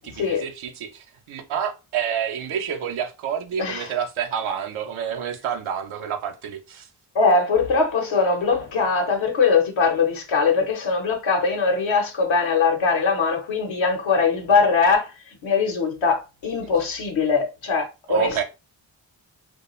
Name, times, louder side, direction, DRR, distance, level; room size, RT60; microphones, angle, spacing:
voice 1, 0.0-6.9 18.1-18.4, right 8 dB, 85° right, 0.6 m, -28 dB
voice 2, 3.6-3.9 7.1-15.1 15.4-18.4, left 4 dB, 75° left, 0.8 m, -21 dB
2.3 x 2.2 x 2.9 m
cardioid pair, 45°, 47 cm